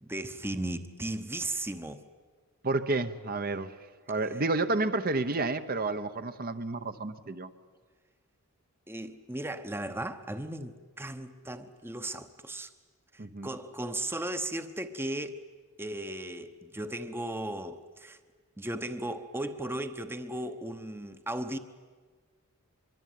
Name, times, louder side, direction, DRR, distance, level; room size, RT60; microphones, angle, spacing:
voice 1, 0.0-2.0 8.9-12.7 13.1-15.4 15.8-18.2 18.6-21.6, right 1 dB, 10° right, 1.0 m, -36 dB
voice 2, 2.6-7.5 13.2-13.5, right 2 dB, 40° right, 1.0 m, -30 dB
25.5 x 22.5 x 9.4 m
head